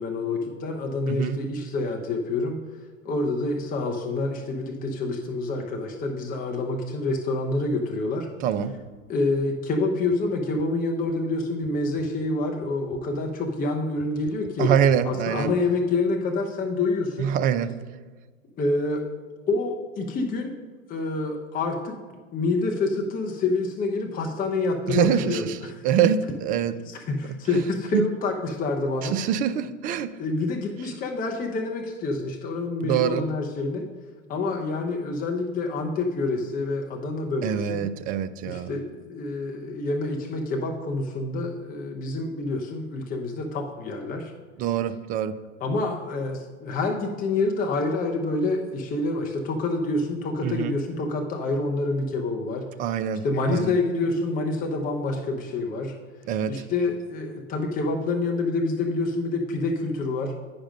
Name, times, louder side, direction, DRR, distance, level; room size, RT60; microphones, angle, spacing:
voice 1, 0.0-2.6 3.0-8.3 9.1-14.7 15.0-17.3 18.6-19.0 19.5-20.5 20.9-22.0 22.3-25.7 26.8-29.2 30.2-33.9 34.3-37.9 38.4-44.3 45.6-52.7 53.2-55.9 56.5-60.3, left 3 dB, 20° left, 2 dB, 0.8 m, -27 dB
voice 2, 1.1-1.4 8.4-8.7 14.6-15.5 17.2-17.7 24.9-25.6 25.8-26.7 27.5-27.6 27.9-28.0 29.0-30.1 32.8-33.2 37.4-38.7 44.6-45.3 50.4-50.8 52.8-53.2 53.5-53.7 56.3-56.6, right 8 dB, 25° right, 13 dB, 0.3 m, -24 dB
10.0 x 5.2 x 5.1 m, 1.4 s
hypercardioid pair, 105°, 39 cm